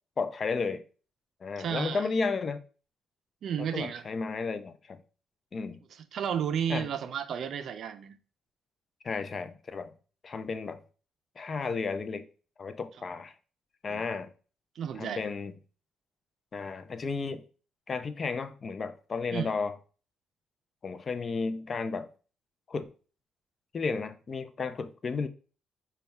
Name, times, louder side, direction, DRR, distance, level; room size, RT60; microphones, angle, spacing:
voice 1, 0.2-0.8 1.4-2.6 3.6-5.0 5.5-5.8 6.7-6.9 9.0-9.9 10.2-10.8 11.4-12.3 12.6-13.3 13.8-14.3 15.0-15.5 16.5-17.4 17.9-19.7 20.8-22.1 22.7-22.9 23.7-25.3, left 4 dB, 40° left, 0.4 m, -33 dB
voice 2, 1.6-2.1 3.4-4.0 5.9-8.2 13.9-14.0 14.8-15.2 19.3-19.5, right 8 dB, 65° right, 0.4 m, -32 dB
5.2 x 2.2 x 3.4 m
cardioid pair, 90°, 0 cm